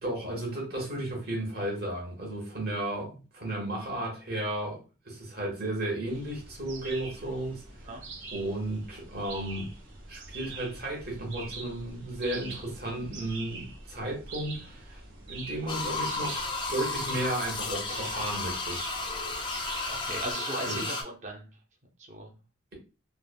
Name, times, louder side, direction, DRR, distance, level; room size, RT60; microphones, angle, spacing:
voice 1, 0.0-7.9 8.3-9.7 10.1-15.0 15.3-18.8 20.6-21.0, right 1 dB, 50° right, 1.2 m, -34 dB
sound 1, 6.1-20.3, right 3 dB, 75° right, 0.7 m, -44 dB
sound 2, 15.7-21.0, left 3 dB, 25° left, 0.3 m, -33 dB
voice 2, 19.9-21.5 22.1-22.3, right 2 dB, 35° right, 0.5 m, -37 dB
3.2 x 2.1 x 2.2 m
head